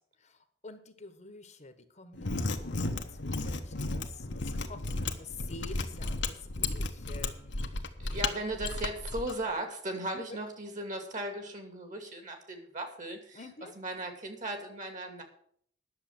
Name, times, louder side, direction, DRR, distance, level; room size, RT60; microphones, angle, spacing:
voice 1, 0.2-7.6 10.1-10.4 13.3-13.7, left 3 dB, 40° left, 9 dB, 1.2 m, -49 dB
Mechanisms, 2.1-9.3, left 3 dB, 80° left, 1.2 m, -34 dB
voice 2, 8.0-13.4 13.8-15.2, right 2 dB, 45° right, 5 dB, 2.7 m, -37 dB
10.5 x 7.0 x 8.7 m, 0.63 s
head